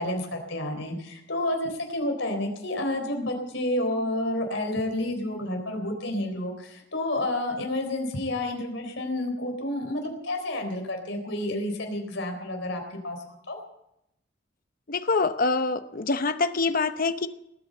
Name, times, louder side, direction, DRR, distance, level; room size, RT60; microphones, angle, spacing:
voice 1, 0.0-13.2 13.5-13.6, left 1 dB, 75° left, 4 dB, 4.0 m, -30 dB
voice 2, 14.9-17.3, left 3 dB, 50° left, 10 dB, 0.9 m, -25 dB
19.0 x 9.0 x 7.9 m, 0.81 s
head